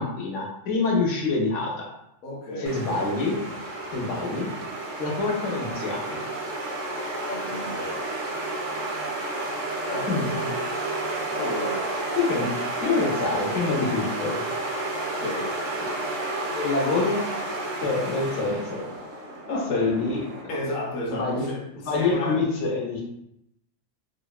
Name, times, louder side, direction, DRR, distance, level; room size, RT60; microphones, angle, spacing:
voice 1, 0.0-1.9 2.6-3.4 3.9-4.5 5.0-6.2 10.1-10.3 12.2-12.5 12.8-14.3 16.5-17.2 17.8-18.8 19.5-20.6 21.1-21.4 21.8-23.0, left 3 dB, 75° left, -1 dB, 1.0 m, -26 dB
voice 2, 2.2-2.9 7.3-8.1 9.9-10.1 11.3-11.9 15.2-15.5 19.4-19.9 20.5-22.4, left 1 dB, 60° left, -1 dB, 0.5 m, -32 dB
sound 1, 2.6-20.4, right 2 dB, 60° right, 0.5 m, -31 dB
2.9 x 2.0 x 2.3 m, 0.79 s
omnidirectional pair, 1.3 m